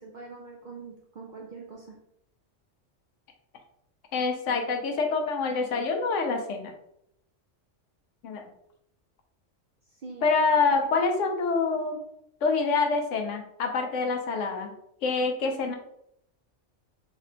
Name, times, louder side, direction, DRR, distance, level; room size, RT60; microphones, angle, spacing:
voice 1, 0.0-2.0 9.9-10.3 10.7-10.9, right 4 dB, 65° right, -1 dB, 0.5 m, -43 dB
voice 2, 4.1-6.7 8.2-8.5 10.2-12.0 12.4-14.7 15.0-15.8, left 4 dB, 80° left, 4 dB, 1.0 m, -26 dB
3.4 x 2.2 x 3.8 m, 0.77 s
omnidirectional pair, 1.3 m